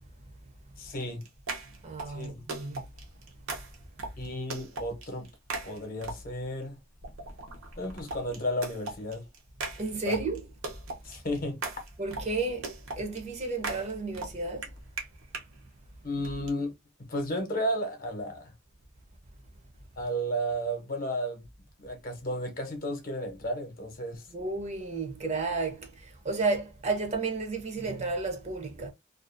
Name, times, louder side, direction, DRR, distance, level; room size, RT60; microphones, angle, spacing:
voice 1, 0.8-1.3 2.1-2.4 4.2-5.3 5.6-6.8 7.8-9.3 10.0-10.2 11.0-11.6 16.0-16.7 17.1-18.5 20.0-21.5 21.8-24.2, equal, 45° left, 0.8 m, -33 dB
sound 1, 1.0-6.5 7.0-15.5 16.2-16.5, right 3 dB, 85° right, 0.8 m, -39 dB
voice 2, 1.8-2.8 9.8-10.4 12.0-14.7 24.3-28.9, right 3 dB, 35° right, 0.5 m, -32 dB
2.5 x 2.3 x 2.5 m
head